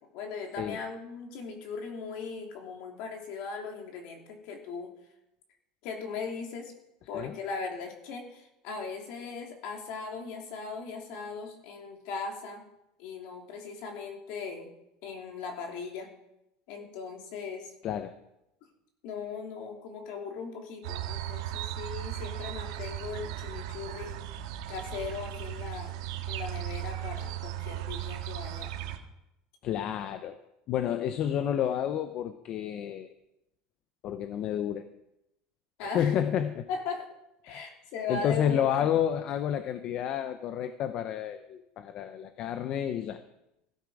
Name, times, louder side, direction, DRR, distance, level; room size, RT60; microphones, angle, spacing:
voice 1, 0.1-4.9 5.8-6.7 7.1-12.7 13.0-14.7 15.0-16.1 16.7-17.7 19.0-24.2 24.7-26.0 26.3-28.7 35.8-36.1 36.7-37.1 37.4-38.9, left 5 dB, 55° left, 2 dB, 3.0 m, -38 dB
sound 1, 20.8-29.0, right 12 dB, 90° right, 1.6 m, -37 dB
voice 2, 29.6-30.4 30.7-33.1 34.0-34.9 35.8-36.7 37.5-37.7 38.1-43.2, left 9 dB, 35° left, 10 dB, 0.7 m, -30 dB
16.0 x 12.0 x 4.9 m, 0.87 s
cardioid pair, 170°, 2 cm